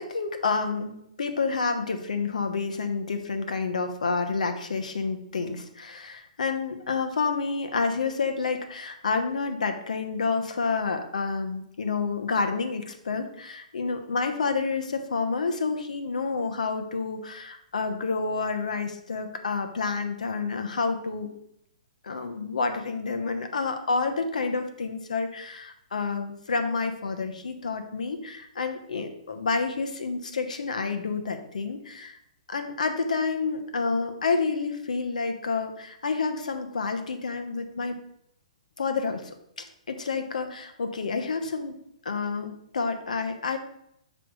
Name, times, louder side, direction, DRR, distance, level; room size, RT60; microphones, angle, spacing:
voice 1, 0.0-21.3 22.0-32.2 32.5-38.0 38.8-41.8 42.0-43.6, left 4 dB, 85° left, 6 dB, 1.0 m, -29 dB
7.5 x 3.3 x 6.2 m, 0.76 s
hypercardioid pair, 145°, 4 cm